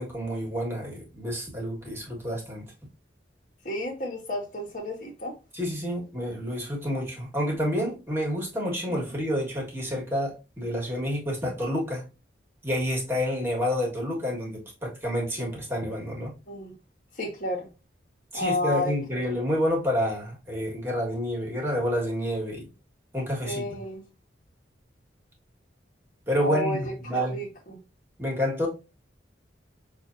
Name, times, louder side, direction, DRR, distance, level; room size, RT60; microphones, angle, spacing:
voice 1, 0.0-2.6 5.5-12.1 12.6-16.3 18.3-22.7 23.1-23.8 26.3-27.4 28.2-28.7, equal, 10° right, 1.6 m, -29 dB
voice 2, 3.6-5.3 16.5-16.7 17.2-17.7 18.3-18.9 23.4-24.0 26.4-27.8, left 1 dB, 45° left, 1.5 m, -31 dB
6.1 x 2.7 x 2.6 m
head